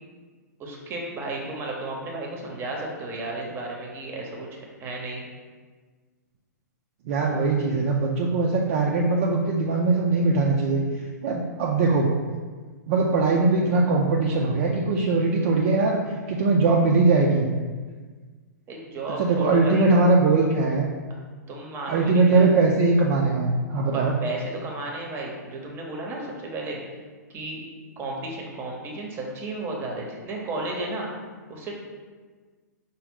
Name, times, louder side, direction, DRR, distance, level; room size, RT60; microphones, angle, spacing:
voice 1, 0.6-5.2 18.7-19.9 21.5-22.6 23.9-26.8 27.3-27.6 28.0-31.1 31.5-31.8, right 2 dB, 25° right, -1 dB, 0.8 m, -33 dB
voice 2, 7.1-10.8 11.2-12.1 12.9-16.0 16.3-17.5 19.2-20.9 21.9-24.1, right 3 dB, 45° right, -2 dB, 0.4 m, -21 dB
4.9 x 2.2 x 3.6 m, 1.5 s
hypercardioid pair, 120°, 10 cm